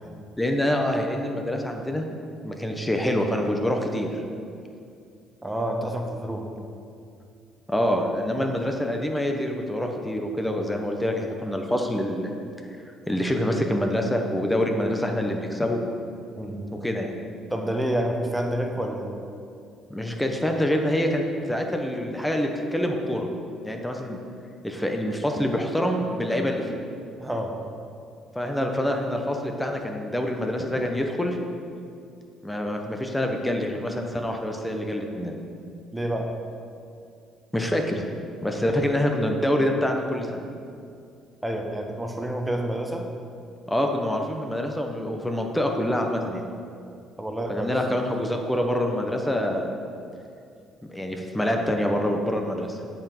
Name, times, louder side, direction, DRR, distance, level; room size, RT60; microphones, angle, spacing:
voice 1, 0.4-2.1 2.4-4.2 7.7-12.3 12.7-12.8 13.1-15.8 16.8-17.1 19.9-23.3 23.6-24.2 24.6-26.8 28.3-31.4 32.4-35.4 37.5-40.4 43.7-46.5 47.5-49.7 50.9-52.8, left 1 dB, 10° left, 3 dB, 1.2 m, -26 dB
voice 2, 5.4-6.6 16.4-16.7 17.5-19.1 27.2-27.6 35.9-36.3 41.4-43.1 47.2-47.7, right 1 dB, 10° right, 2 dB, 1.4 m, -28 dB
8.6 x 5.8 x 6.2 m, 2.4 s
supercardioid pair, 70°, 0 cm